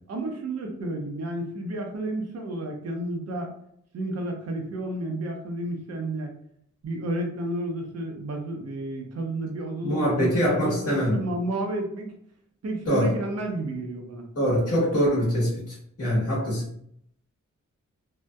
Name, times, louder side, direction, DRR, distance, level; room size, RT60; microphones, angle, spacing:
voice 1, 0.1-3.5 3.9-6.3 6.8-12.1 12.6-14.3, right 1 dB, 55° right, 2 dB, 0.6 m, -31 dB
voice 2, 9.8-11.2 12.9-13.1 14.3-16.7, equal, 50° left, -7 dB, 1.2 m, -24 dB
2.6 x 2.1 x 2.2 m, 0.69 s
wide cardioid pair, 75°, 31 cm